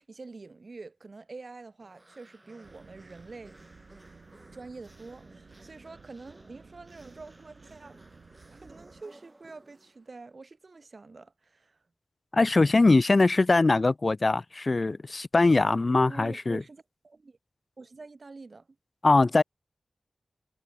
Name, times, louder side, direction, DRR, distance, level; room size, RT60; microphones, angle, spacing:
voice 1, 0.0-3.6 4.5-8.0 8.5-11.8 16.1-17.4 17.8-18.7, right 3 dB, 55° right, 1.8 m, -46 dB
sound 1, 1.8-10.3, right 2 dB, 25° right, 3.4 m, -56 dB
sound 2, 2.6-9.0, right 5 dB, 90° right, 2.2 m, -55 dB
voice 2, 12.3-16.6 19.0-19.4, left 3 dB, 45° left, 0.4 m, -22 dB
wide cardioid pair, 90°, 0 cm